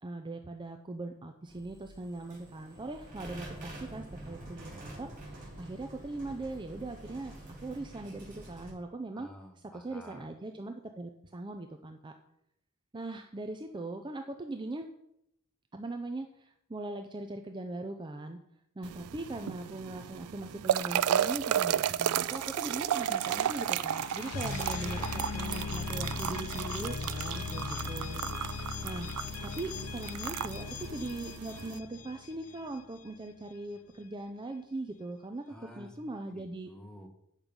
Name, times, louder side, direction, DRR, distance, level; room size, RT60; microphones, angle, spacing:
voice 1, 0.0-7.3 7.6-9.3 9.7-12.1 12.9-14.9 15.7-18.4 18.8-28.5 28.8-29.1 29.4-35.4 35.8-36.7, right 2 dB, 20° right, 6 dB, 0.5 m, -40 dB
sound 1, 1.5-8.7, right 1 dB, 40° right, 3.3 m, -47 dB
voice 2, 9.1-10.3 35.5-35.9 36.3-37.1, equal, 5° left, 3 dB, 1.2 m, -51 dB
sound 2, 18.8-31.8, right 10 dB, 85° right, 0.3 m, -33 dB
sound 3, 22.2-33.0, left 5 dB, 70° left, 0.5 m, -39 dB
8.9 x 6.3 x 5.2 m, 0.78 s
head